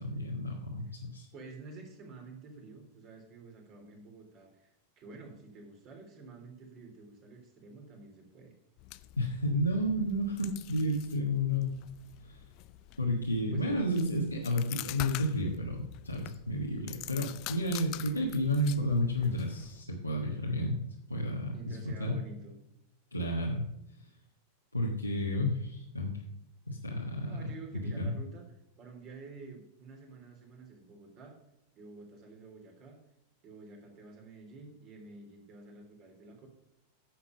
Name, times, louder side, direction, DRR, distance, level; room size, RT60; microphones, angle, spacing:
voice 1, 0.0-1.3 9.2-11.8 12.2-12.4 13.0-20.8 21.1-22.2 23.1-23.7 24.7-26.2 26.7-27.4 28.0-28.1, left 1 dB, 85° left, -3 dB, 1.4 m, -31 dB
voice 2, 1.3-8.5 13.5-13.8 21.5-22.6 27.2-28.4 28.8-31.4 31.7-33.0 33.4-36.5, right 3 dB, 35° right, 2 dB, 3.3 m, -50 dB
sound 1, 8.8-19.8, left 16 dB, 40° left, 0.5 m, -46 dB
10.5 x 7.4 x 5.2 m, 0.82 s
figure-of-eight pair, 90°, 0 cm